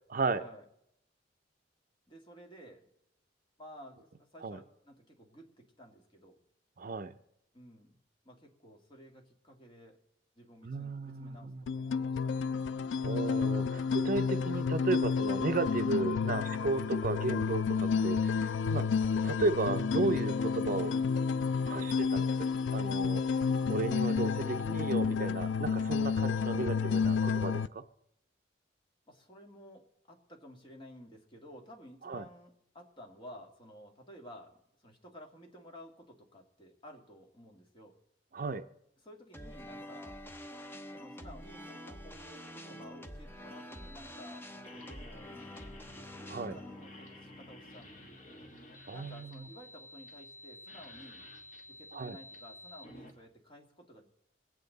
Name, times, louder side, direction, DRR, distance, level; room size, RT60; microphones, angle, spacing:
voice 1, 0.1-0.4 4.4-4.6 6.8-7.1 10.6-11.6 13.0-18.9 19.2-20.9 21.7-22.3 22.7-23.4 23.7-27.8 32.1-32.2 38.3-38.7 46.3-46.6 48.9-49.4 51.9-52.2, right 3 dB, 50° right, 9 dB, 0.5 m, -34 dB
voice 2, 2.1-2.8 3.6-6.4 7.5-8.0 8.2-10.0 10.4-12.5 29.1-38.0 39.0-40.2 40.9-45.8 46.4-48.2 48.9-51.3 51.8-54.1, equal, 30° left, 1 dB, 2.1 m, -53 dB
sound 1, 11.7-27.7, left 5 dB, 80° left, 0.4 m, -30 dB
sound 2, 39.3-48.5, left 1 dB, 10° left, 0.8 m, -47 dB
sound 3, 43.7-53.1, left 1 dB, 45° left, 2.0 m, -52 dB
23.0 x 8.8 x 4.0 m, 0.79 s
head